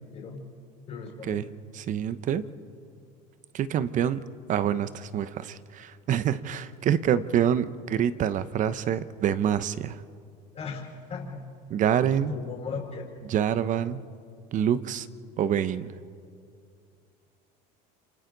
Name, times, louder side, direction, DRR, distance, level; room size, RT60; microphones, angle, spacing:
voice 1, 0.9-1.4 10.5-10.8 11.1-11.4 12.1-13.1, left 5 dB, 40° left, -3 dB, 4.8 m, -37 dB
voice 2, 1.7-2.4 3.5-4.2 4.5-10.0 11.7-12.3 13.3-14.0 14.5-15.1 15.4-15.9, right 9 dB, 45° right, 14 dB, 0.9 m, -26 dB
28.0 x 27.0 x 4.0 m, 2.3 s
supercardioid pair, 110°, 18 cm